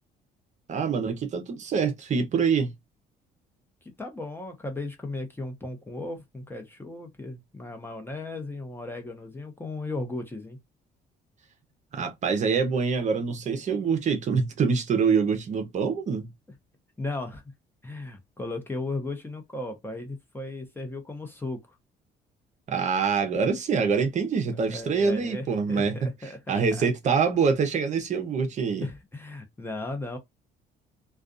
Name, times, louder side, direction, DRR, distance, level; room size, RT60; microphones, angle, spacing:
voice 1, 0.7-2.7 11.9-16.3 22.7-28.9, right 5 dB, 45° right, 0.7 m, -25 dB
voice 2, 3.8-10.6 17.0-17.4 17.8-21.6 24.6-26.9 28.8-30.2, left 2 dB, 15° left, 0.8 m, -36 dB
2.5 x 2.3 x 2.4 m
cardioid pair, 110°, 17 cm